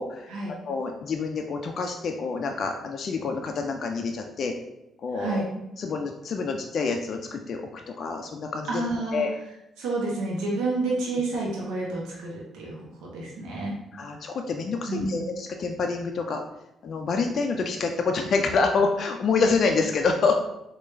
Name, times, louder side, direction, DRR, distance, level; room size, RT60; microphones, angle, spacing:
voice 1, 0.6-4.5 5.0-5.5 5.8-8.8 9.1-9.3 13.9-16.4 16.8-20.4, left 4 dB, 55° left, 3 dB, 0.3 m, -27 dB
voice 2, 5.1-5.4 8.7-9.3 9.8-13.7 14.9-15.2, right 2 dB, 90° right, -3 dB, 0.7 m, -29 dB
3.2 x 2.3 x 3.1 m, 0.86 s
cardioid pair, 90°, 0 cm